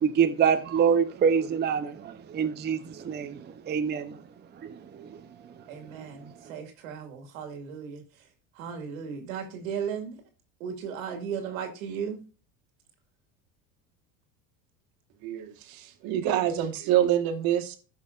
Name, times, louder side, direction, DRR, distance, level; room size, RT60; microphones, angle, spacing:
voice 1, 0.0-4.2 4.6-5.1, right 7 dB, 25° right, 0.7 m, -26 dB
voice 2, 5.7-8.0 8.6-10.2 10.6-12.2, right 7 dB, 85° right, 2.1 m, -36 dB
voice 3, 15.2-17.8, right 11 dB, 60° right, 1.7 m, -26 dB
14.5 x 5.6 x 2.5 m
supercardioid pair, 100°, 39 cm